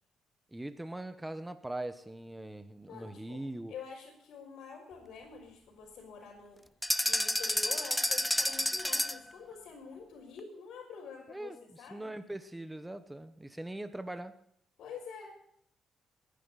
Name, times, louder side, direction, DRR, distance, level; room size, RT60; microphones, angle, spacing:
voice 1, 0.5-3.7 11.3-14.4, right 1 dB, 10° right, 10 dB, 1.1 m, -41 dB
voice 2, 2.9-3.4 3.7-6.6 7.0-12.1 14.8-15.4, left 5 dB, 75° left, -5 dB, 4.5 m, -47 dB
sound 1, 6.8-9.3, left 1 dB, 5° left, 0.6 m, -30 dB
20.5 x 10.5 x 4.1 m, 0.66 s
cardioid pair, 90°, 0 cm